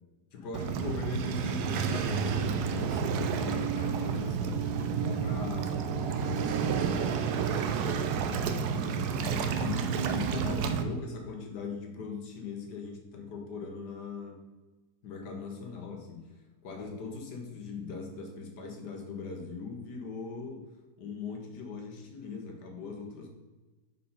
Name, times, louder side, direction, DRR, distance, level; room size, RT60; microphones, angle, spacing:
voice 1, 0.3-14.4 15.0-23.3, left 4 dB, 60° left, 3 dB, 1.4 m, -41 dB
Waves surf, 0.5-10.8, right 6 dB, 80° right, 0.8 m, -30 dB
5.4 x 4.2 x 5.4 m, 1.2 s
omnidirectional pair, 2.3 m